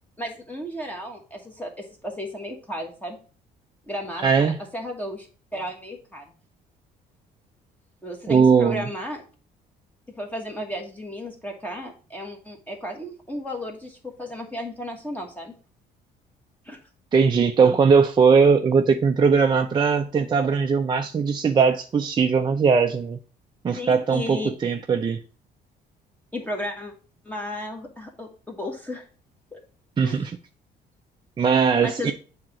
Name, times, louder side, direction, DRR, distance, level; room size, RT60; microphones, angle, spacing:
voice 1, 0.2-3.2 3.9-5.3 5.5-6.2 8.0-9.2 10.2-15.5 16.6-16.8 23.7-24.5 26.3-26.9 27.2-29.0 29.5-29.6 30.0-30.3 31.8-32.1, left 1 dB, 10° left, 1.3 m, -34 dB
voice 2, 4.2-4.6 8.3-8.8 17.1-23.2 23.6-25.2 30.0-30.4 31.4-32.1, right 5 dB, 25° right, 0.5 m, -19 dB
7.4 x 2.9 x 5.9 m
cardioid pair, 110°, 17 cm